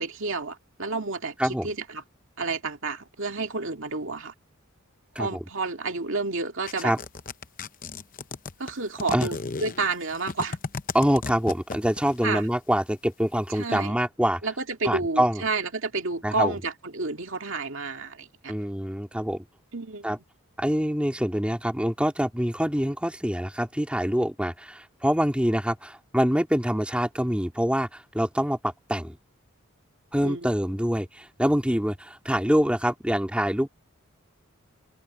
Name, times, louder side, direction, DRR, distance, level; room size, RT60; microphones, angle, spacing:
voice 1, 0.0-2.0 2.4-4.3 5.2-6.9 8.6-10.6 12.2-12.5 13.5-13.9 14.4-18.5 19.7-20.1 30.2-30.5, right 3 dB, 60° right, 2.3 m, -30 dB
sound 1, 6.7-12.1, left 4 dB, 40° left, 0.8 m, -34 dB
voice 2, 10.9-14.4 14.8-15.4 16.2-16.5 18.5-19.5 20.0-20.2 20.6-29.2 30.1-33.7, equal, 5° right, 2.7 m, -25 dB
head